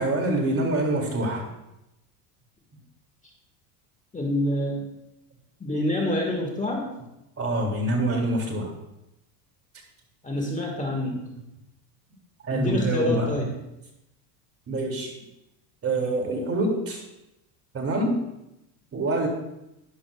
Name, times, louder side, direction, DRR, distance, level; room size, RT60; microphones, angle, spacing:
voice 1, 0.0-1.4 7.4-8.7 12.4-13.5 14.7-15.1 15.8-17.0 17.7-18.2 18.9-19.3, right 2 dB, 30° right, 2 dB, 2.5 m, -25 dB
voice 2, 4.1-4.9 5.6-6.9 10.2-11.2 12.5-13.5, left 1 dB, 15° left, 1 dB, 1.7 m, -26 dB
11.5 x 10.0 x 2.3 m, 0.89 s
supercardioid pair, 110°, 47 cm